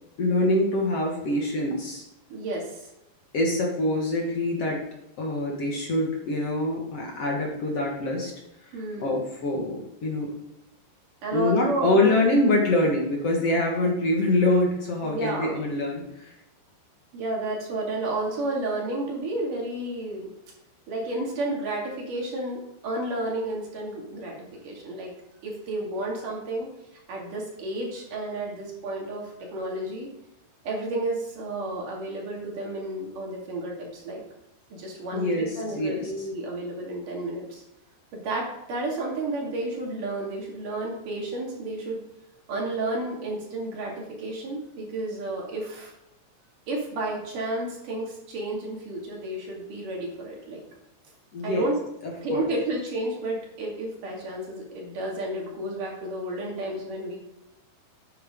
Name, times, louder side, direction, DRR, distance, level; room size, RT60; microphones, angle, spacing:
voice 1, 0.2-2.0 3.3-4.8 5.2-8.3 8.7-10.3 11.3-16.3 35.1-36.1 51.3-51.7 52.0-52.5, left 1 dB, 50° left, -2 dB, 2.0 m, -25 dB
voice 2, 2.3-2.9 8.7-9.2 11.2-12.1 15.0-15.5 17.1-20.3 20.9-25.1 25.4-26.7 27.1-30.1 30.6-34.2 34.7-37.6 38.1-42.0 42.5-45.9 46.7-50.6 51.4-51.8 52.2-57.2, right 2 dB, 50° right, -2 dB, 3.6 m, -31 dB
11.0 x 9.3 x 3.8 m, 0.89 s
omnidirectional pair, 5.1 m